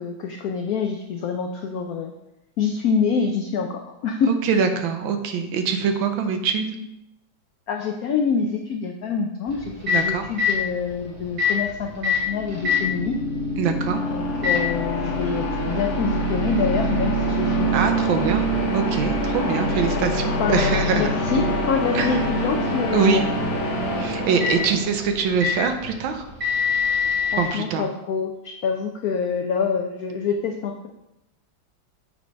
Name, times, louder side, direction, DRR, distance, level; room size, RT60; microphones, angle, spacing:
voice 1, 0.0-2.1 2.6-4.3 7.7-13.2 14.1-17.9 18.1-18.3 19.7-19.9 20.4-23.2 27.3-30.9, left 5 dB, 85° left, 3 dB, 0.8 m, -26 dB
voice 2, 4.4-6.7 9.9-10.3 13.6-14.0 17.7-18.4 18.7-21.1 21.9-22.2 22.9-23.3 24.0-26.3 27.4-27.9, right 6 dB, 80° right, 7 dB, 1.4 m, -23 dB
Microwave oven, 9.5-27.5, left 5 dB, 30° right, 1.7 m, -29 dB
sound 1, 12.3-25.2, equal, 55° left, 0.8 m, -25 dB
7.0 x 3.2 x 5.0 m, 0.89 s
omnidirectional pair, 2.2 m